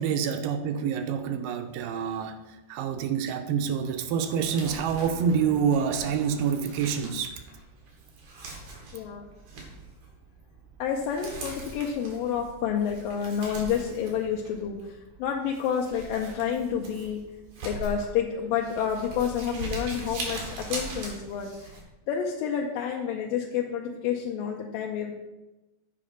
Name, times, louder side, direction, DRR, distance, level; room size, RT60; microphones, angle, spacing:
voice 1, 0.0-2.4 2.7-7.3, right 7 dB, 80° right, 7 dB, 2.3 m, -27 dB
Crumpling crinkling, 4.4-21.8, right 2 dB, 65° right, 3.4 m, -41 dB
voice 2, 8.9-9.2 10.8-17.2 17.6-21.5 22.1-25.1, left 8 dB, 90° left, 0 dB, 2.5 m, -29 dB
8.7 x 5.0 x 6.5 m, 1.0 s
omnidirectional pair, 4.0 m